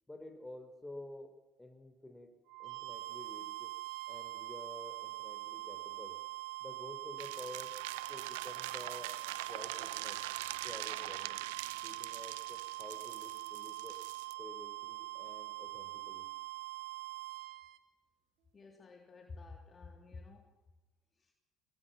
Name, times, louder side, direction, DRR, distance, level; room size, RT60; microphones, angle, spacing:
voice 1, 0.1-1.3 1.6-2.3 2.6-3.7 4.1-6.2 6.6-7.8 8.1-9.2 9.5-10.2 10.6-11.4 11.8-14.0 14.4-16.3, left 1 dB, 15° left, 5 dB, 5.3 m, -50 dB
sound 1, 2.5-17.8, right 19 dB, 75° right, 2.1 m, -44 dB
sound 2, 7.2-14.3, right 16 dB, 90° right, 0.8 m, -43 dB
voice 2, 18.5-20.5 21.2-21.3, left 3 dB, 35° left, 2 dB, 3.4 m, -51 dB
26.5 x 19.5 x 6.2 m, 1.1 s
supercardioid pair, 70°, 0 cm